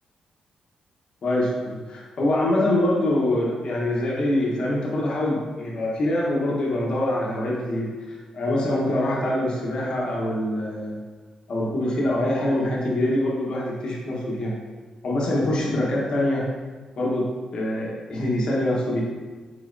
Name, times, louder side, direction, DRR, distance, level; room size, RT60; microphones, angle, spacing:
voice 1, 1.2-11.0 11.5-14.5 15.0-16.5 17.0-19.0, left 1 dB, 45° left, -4 dB, 0.9 m, -24 dB
5.0 x 4.2 x 2.5 m, 1.4 s
wide cardioid pair, 175°, 2 cm